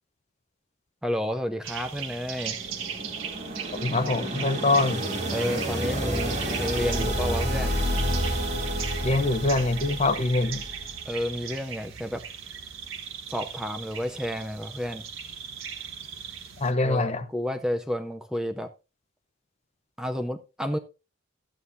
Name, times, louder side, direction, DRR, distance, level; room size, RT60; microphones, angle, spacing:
voice 1, 1.0-2.6 5.3-7.8 11.1-12.2 13.3-15.0 16.8-18.7 20.0-20.8, equal, 5° right, 0.6 m, -31 dB
sound 1, 1.6-16.7, right 7 dB, 75° right, 1.5 m, -38 dB
sound 2, 2.2-11.0, equal, 35° right, 2.7 m, -30 dB
voice 2, 3.8-5.0 9.0-10.6 16.6-17.3, left 2 dB, 30° left, 0.7 m, -24 dB
12.5 x 9.0 x 2.7 m
head